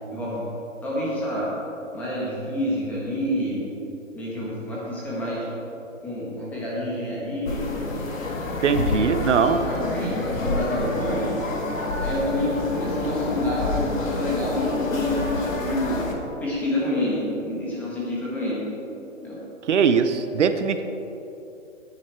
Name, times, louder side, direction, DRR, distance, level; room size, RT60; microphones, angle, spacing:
voice 1, 0.1-0.5 0.8-1.5 1.9-3.6 4.1-5.5 6.0-7.9 8.7-11.3 12.0-16.1 16.4-18.6 19.2-19.4, left 1 dB, 5° left, -7 dB, 1.2 m, -28 dB
sound 1, 7.5-16.1, left 3 dB, 90° left, 1.9 m, -28 dB
voice 2, 8.6-9.6 19.7-20.8, right 6 dB, 65° right, 9 dB, 0.9 m, -21 dB
11.0 x 9.8 x 4.6 m, 2.9 s
hypercardioid pair, 170°, 39 cm